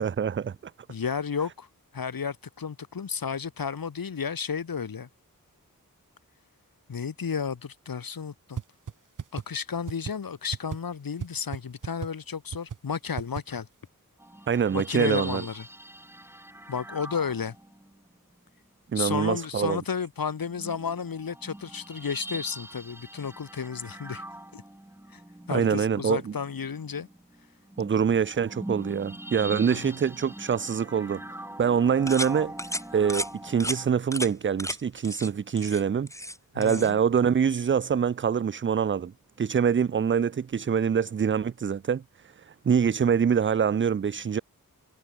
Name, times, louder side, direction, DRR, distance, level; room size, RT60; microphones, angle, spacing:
voice 1, 0.0-0.7 14.5-15.4 18.9-19.8 25.5-26.3 27.8-32.5 32.9-36.1 36.5-39.1 39.4-44.4, right 7 dB, 35° right, 0.4 m, -25 dB
voice 2, 0.9-1.7 1.9-5.1 6.9-8.6 9.3-13.7 14.7-15.6 16.7-17.5 18.9-24.2 24.5-24.6 25.1-25.2 25.5-27.1 29.6-29.9 36.5-37.0, left 6 dB, 80° left, 1.3 m, -32 dB
sound 1, 8.6-8.7 8.9-9.0 9.2-9.4 9.9-10.1 10.5-10.8 11.2-11.3 11.5-11.6 11.8-12.1 12.5-12.8 13.2-13.4, right 7 dB, 65° right, 0.8 m, -33 dB
sound 2, 14.2-18.1 20.4-33.9, right 1 dB, 5° right, 0.8 m, -42 dB
sound 3, 32.1-32.3 32.6-32.8 33.1-33.3 33.6-33.8 34.1-34.3 34.6-34.8 35.0-35.3 35.6-36.4 36.6-36.9, left 1 dB, 10° left, 2.4 m, -33 dB
wide cardioid pair, 70°, 34 cm